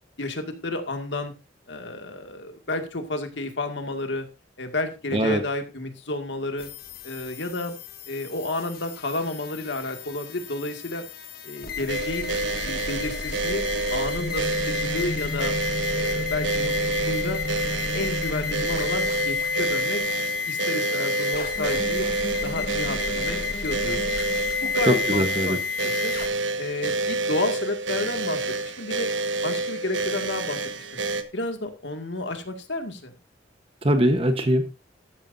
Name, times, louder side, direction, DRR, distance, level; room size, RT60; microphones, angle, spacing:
voice 1, 0.2-1.3 1.7-4.3 4.6-6.7 7.0-7.8 8.1-11.0 11.4-12.3 12.6-13.6 13.9-15.6 15.9-17.4 17.9-20.0 20.4-22.1 22.4-24.2 24.6-26.1 26.6-29.1 29.4-30.9 31.3-33.1, left 2 dB, 75° left, 5 dB, 2.1 m, -31 dB
sound 1, 6.6-26.3, left 5 dB, 55° left, 1.5 m, -31 dB
sound 2, 11.9-31.2, right 3 dB, 85° right, 1.4 m, -28 dB
voice 2, 24.9-25.6 33.8-34.7, equal, 30° right, 7 dB, 1.1 m, -21 dB
13.0 x 12.5 x 2.7 m, 0.28 s
head